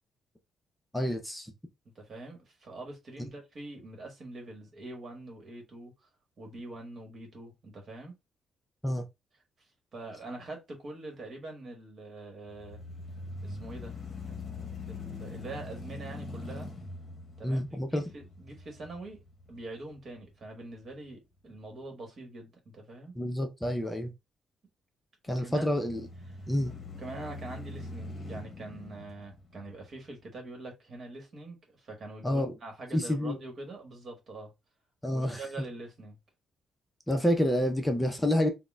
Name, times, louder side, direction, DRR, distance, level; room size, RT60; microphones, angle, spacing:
voice 1, 0.9-1.5 8.8-9.0 17.4-18.0 23.2-24.1 25.3-26.0 26.5-26.8 32.2-32.5 32.9-33.4 35.0-35.4 37.1-38.5, left 1 dB, 10° left, 0.5 m, -28 dB
voice 2, 1.9-6.1 6.4-8.1 9.9-12.8 13.4-13.9 14.3-16.7 17.4-19.2 19.5-23.1 25.3-25.7 26.3-34.5 35.1-36.2, right 2 dB, 50° right, 1.2 m, -44 dB
sound 1, 12.5-20.6 21.1-21.2 25.7-30.2, left 3 dB, 30° left, 0.9 m, -43 dB
3.6 x 2.1 x 2.2 m
cardioid pair, 90°, 0 cm